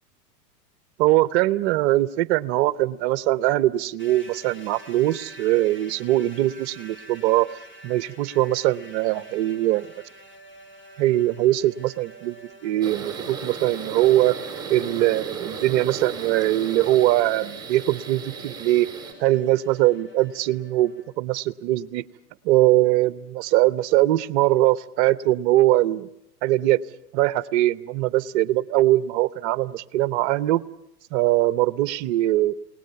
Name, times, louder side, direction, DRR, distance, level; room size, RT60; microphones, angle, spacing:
voice 1, 1.0-7.5 7.8-9.9 11.0-12.4 12.6-14.4 14.7-18.9 19.2-22.0 22.4-26.1 26.4-26.8 27.1-30.6 31.1-32.5, right 15 dB, 45° right, 17 dB, 0.9 m, -21 dB
sound 1, 4.0-21.1, right 2 dB, 25° left, 4.7 m, -47 dB
sound 2, 12.8-19.1, right 5 dB, 10° right, 4.6 m, -35 dB
28.5 x 19.0 x 7.0 m, 0.81 s
hypercardioid pair, 110°, 48 cm